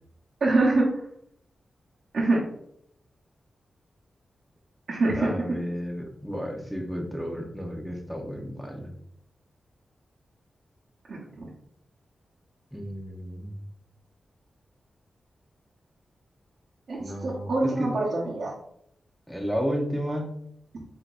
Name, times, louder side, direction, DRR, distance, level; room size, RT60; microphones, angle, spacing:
voice 1, 0.4-0.9 2.1-2.4 4.9-5.6 11.1-11.5 16.9-18.5, right 2 dB, 60° right, -6 dB, 1.1 m, -25 dB
voice 2, 5.2-8.9 12.7-13.6 17.0-17.5 17.8-17.9 19.3-20.4, equal, ahead, 1 dB, 0.9 m, -32 dB
4.2 x 3.8 x 2.5 m, 0.71 s
wide cardioid pair, 85°, 0 cm